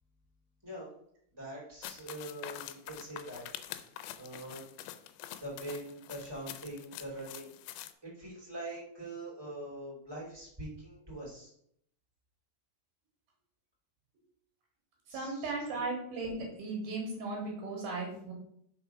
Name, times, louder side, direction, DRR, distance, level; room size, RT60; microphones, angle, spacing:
voice 1, 1.4-4.7 5.4-7.5 8.0-11.5 15.1-15.9, right 1 dB, 10° right, -5 dB, 1.9 m, -44 dB
sound 1, 1.8-7.9, left 12 dB, 85° left, 2.8 m, -46 dB
voice 2, 15.1-18.3, right 3 dB, 65° right, -1 dB, 3.0 m, -36 dB
6.2 x 4.6 x 5.7 m, 0.68 s
omnidirectional pair, 5.2 m